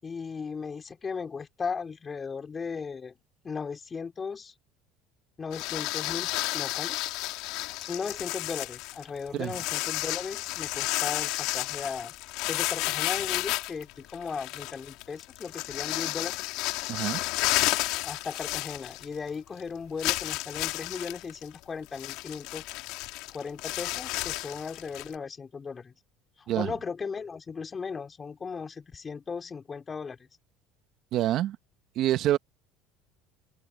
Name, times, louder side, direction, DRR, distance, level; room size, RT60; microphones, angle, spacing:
voice 1, 0.0-3.1 3.4-4.5 5.4-7.0 7.8-12.1 12.5-16.4 18.0-22.6 23.3-25.9 26.4-30.3, left 5 dB, 30° left, 4.8 m, -37 dB
sound 1, 5.5-19.3 19.6-19.7 20.0-25.2, left 21 dB, 70° left, 3.1 m, -32 dB
voice 2, 16.9-17.2 26.5-26.7 31.1-31.6 31.9-32.4, right 13 dB, 60° right, 1.4 m, -26 dB
open air
supercardioid pair, 90°, 0 cm